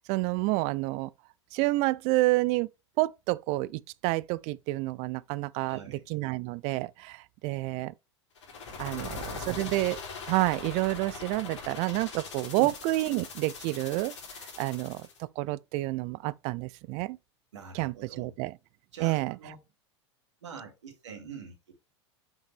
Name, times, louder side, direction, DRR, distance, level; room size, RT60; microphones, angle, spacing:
voice 1, 0.1-1.1 1.5-2.7 3.0-7.9 8.8-10.0 10.3-17.2 17.7-18.6 19.0-19.4, right 20 dB, 45° right, 0.4 m, -29 dB
voice 2, 5.6-6.1 8.9-9.8 12.6-12.7 17.5-18.3 18.9-19.6 20.4-21.8, right 6 dB, 80° right, 2.7 m, -45 dB
sound 1, 8.4-15.2, left 4 dB, 80° left, 4.1 m, -41 dB
7.6 x 5.8 x 3.5 m
hypercardioid pair, 90°, 15 cm